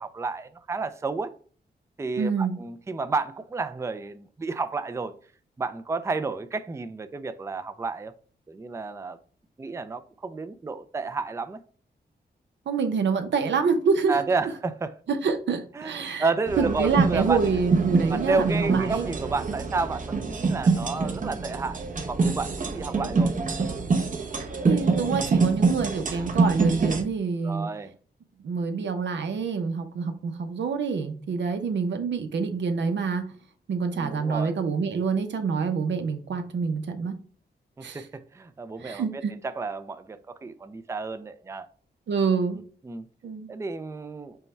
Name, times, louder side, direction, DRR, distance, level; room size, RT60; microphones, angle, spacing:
voice 1, 0.0-1.3 2.0-5.1 5.6-8.1 8.5-9.2 9.6-11.6 14.1-15.0 15.8-17.4 18.1-21.8 22.1-23.3 25.6-25.7 27.4-27.9 33.9-34.5 37.8-41.6 42.8-43.1 43.5-44.4, right 4 dB, 15° right, 0.4 m, -31 dB
voice 2, 2.2-2.6 12.7-14.2 15.1-16.3 16.6-19.1 24.6-27.7 28.4-33.2 33.7-37.1 37.8-38.1 38.8-39.3 42.1-42.6 43.2-43.5, right 5 dB, 85° right, 0.7 m, -26 dB
sound 1, 16.5-27.0, right 4 dB, 45° right, 0.8 m, -25 dB
5.5 x 2.2 x 4.2 m
cardioid pair, 75°, 18 cm